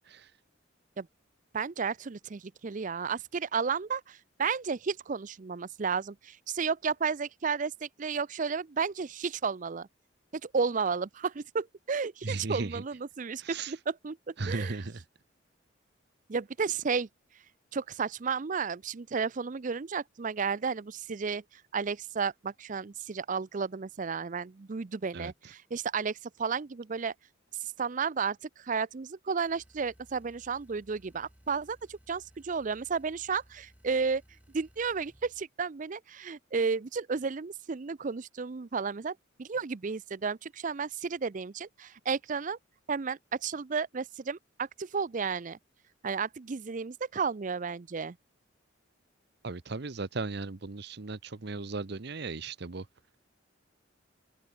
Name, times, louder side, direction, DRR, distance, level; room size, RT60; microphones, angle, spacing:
voice 1, 1.5-9.9 10.4-14.8 16.3-17.1 17.7-27.1 27.6-34.2 34.5-42.6 42.9-45.6 46.0-48.2, right 5 dB, 40° right, 0.5 m, -33 dB
voice 2, 12.2-12.8 13.4-13.7 14.4-15.0 25.1-25.3 49.4-52.9, right 3 dB, 55° right, 0.9 m, -36 dB
sound 1, 29.4-35.5, equal, 5° right, 1.7 m, -60 dB
open air
head